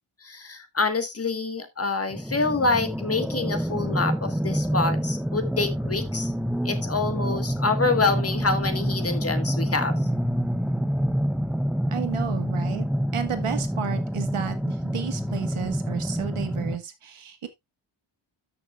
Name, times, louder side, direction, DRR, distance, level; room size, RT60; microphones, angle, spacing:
voice 1, 0.2-6.3 6.6-10.0, left 3 dB, 30° left, 1.6 m, -26 dB
sound 1, 2.1-16.8, equal, ahead, 0.5 m, -27 dB
voice 2, 11.9-12.9 13.1-17.5, right 8 dB, 90° right, 1.8 m, -32 dB
13.5 x 6.1 x 2.4 m
wide cardioid pair, 140°, 49 cm